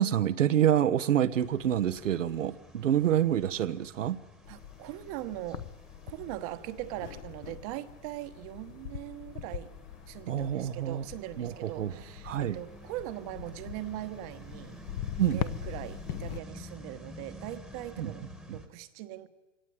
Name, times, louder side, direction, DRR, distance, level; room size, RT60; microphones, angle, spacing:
voice 1, 0.0-4.2 10.3-11.0 11.4-11.9 12.2-12.6 15.2-15.4 18.0-18.1 18.5-18.6, right 10 dB, 80° right, 11 dB, 1.1 m, -27 dB
sound 1, 1.3-18.7, equal, ahead, 1.5 m, -51 dB
sound 2, 4.4-16.4, left 10 dB, 35° left, 0.9 m, -42 dB
voice 2, 4.5-5.6 6.1-9.7 10.1-14.8 15.2-19.3, right 14 dB, 30° right, 12 dB, 1.2 m, -41 dB
24.0 x 18.0 x 9.4 m, 1.1 s
hypercardioid pair, 150°, 37 cm